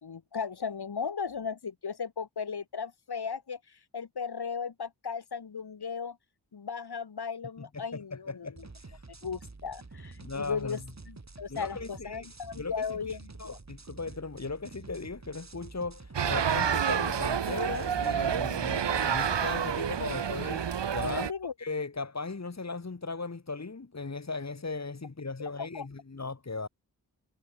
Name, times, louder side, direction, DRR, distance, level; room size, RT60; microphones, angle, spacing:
voice 1, 0.0-6.2 6.5-8.5 9.2-10.8 11.1-13.6 21.1-21.5 25.6-25.9, left 6 dB, 65° left, 3.3 m, -36 dB
voice 2, 7.7-9.0 10.2-10.8 11.5-12.3 12.6-21.3 21.6-26.7, left 3 dB, 40° left, 3.4 m, -38 dB
sound 1, 8.6-18.1, right 3 dB, 40° right, 7.9 m, -48 dB
sound 2, 16.1-21.3, right 8 dB, 85° right, 3.0 m, -29 dB
cardioid pair, 50°, 42 cm